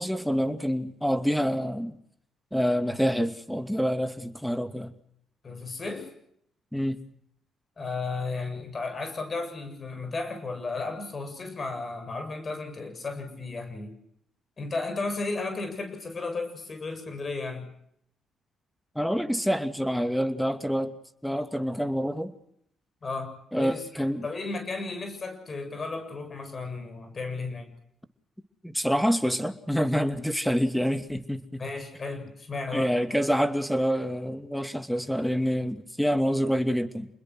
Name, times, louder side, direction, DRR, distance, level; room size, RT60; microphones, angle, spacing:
voice 1, 0.0-2.0 2.5-4.9 6.7-7.0 18.9-20.9 21.2-22.3 23.5-24.3 28.6-31.6 32.7-37.1, equal, ahead, 9 dB, 2.6 m, -27 dB
voice 2, 5.4-6.1 7.8-13.9 14.6-17.7 23.0-27.7 31.6-33.0, left 3 dB, 35° left, 7 dB, 7.3 m, -34 dB
29.0 x 21.0 x 6.3 m, 0.72 s
cardioid pair, 90°, 0 cm